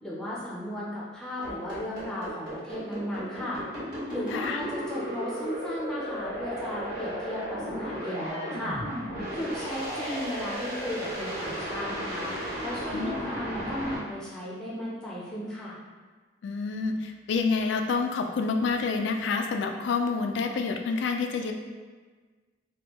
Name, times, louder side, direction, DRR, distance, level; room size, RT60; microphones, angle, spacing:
voice 1, 0.0-3.6 4.1-8.8 9.3-12.3 12.6-15.8, left 1 dB, 5° left, -7 dB, 0.5 m, -35 dB
sound 1, 1.4-14.0, equal, 55° right, 1.4 m, -34 dB
voice 2, 12.9-13.3 16.4-21.5, left 4 dB, 70° left, 5 dB, 0.3 m, -28 dB
3.4 x 2.2 x 2.9 m, 1.4 s
head